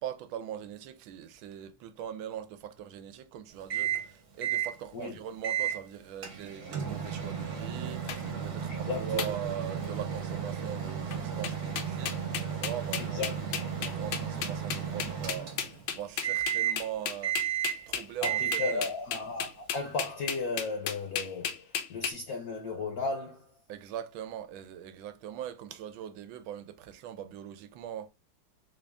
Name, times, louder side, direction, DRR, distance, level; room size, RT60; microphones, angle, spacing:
voice 1, 0.0-17.4 17.9-18.8 23.7-28.1, right 10 dB, 80° right, 1.4 m, -41 dB
Microwave oven, 3.7-4.1 4.4-4.7 5.4-5.8 6.2-15.9 16.2-16.9 17.2-17.9 18.2-18.9, right 8 dB, 55° right, 1.3 m, -33 dB
sound 1, 8.1-8.2 9.2-9.3 9.8-10.1 11.1-11.2 11.4-22.1, left 8 dB, 85° left, 1.5 m, -34 dB
voice 2, 8.7-9.2 13.0-13.4 18.2-23.6, left 3 dB, 60° left, 1.0 m, -35 dB
3.9 x 2.5 x 3.3 m
omnidirectional pair, 2.2 m